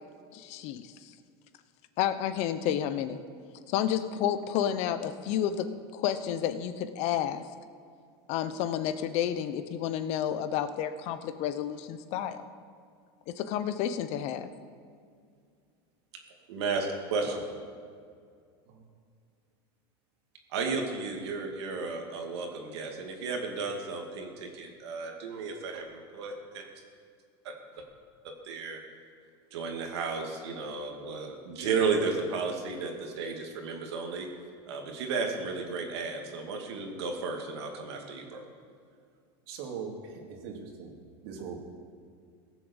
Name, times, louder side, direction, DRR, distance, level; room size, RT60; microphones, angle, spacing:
voice 1, 0.3-1.1 2.0-3.2 3.7-7.4 8.3-12.4 13.3-14.5, left 10 dB, 55° left, 11 dB, 0.9 m, -31 dB
voice 2, 16.5-17.3 20.5-26.6 27.4-27.8 28.2-28.8 29.5-34.3 34.7-38.4, right 4 dB, 85° right, 2 dB, 2.4 m, -33 dB
voice 3, 39.5-41.0 41.2-41.6, right 6 dB, 70° right, 2 dB, 2.6 m, -41 dB
17.0 x 7.3 x 7.2 m, 2.2 s
supercardioid pair, 125°, 14 cm